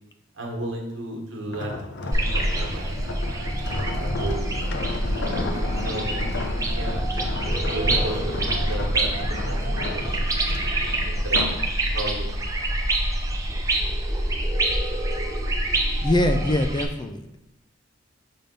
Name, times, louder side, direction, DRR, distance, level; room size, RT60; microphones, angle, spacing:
voice 1, 0.3-4.9 5.7-10.4 11.1-11.6 11.9-12.6, right 1 dB, 90° right, 0 dB, 1.4 m, -35 dB
sound 1, 1.5-11.7 12.1-12.4, left 3 dB, 65° left, 0.6 m, -33 dB
sound 2, 2.1-16.8, right 1 dB, 20° right, 0.7 m, -26 dB
voice 2, 16.0-17.4, left 1 dB, 25° left, 7 dB, 0.4 m, -23 dB
5.9 x 3.5 x 5.2 m, 0.88 s
head